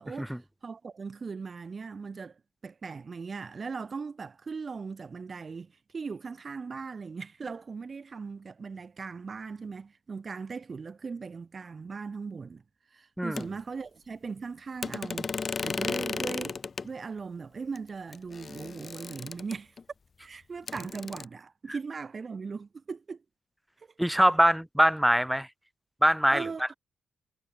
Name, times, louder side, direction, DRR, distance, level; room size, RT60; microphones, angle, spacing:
voice 1, 0.0-12.6 12.9-19.7 20.2-23.2 26.3-26.7, right 5 dB, 45° right, 0.9 m, -39 dB
sound 1, 13.4-13.5 14.8-16.9 17.8-17.9 18.1-19.8 20.7-21.3, left 5 dB, 45° left, 0.5 m, -35 dB
voice 2, 24.0-25.5 26.0-26.5, equal, 5° right, 1.1 m, -23 dB
supercardioid pair, 55°, 0 cm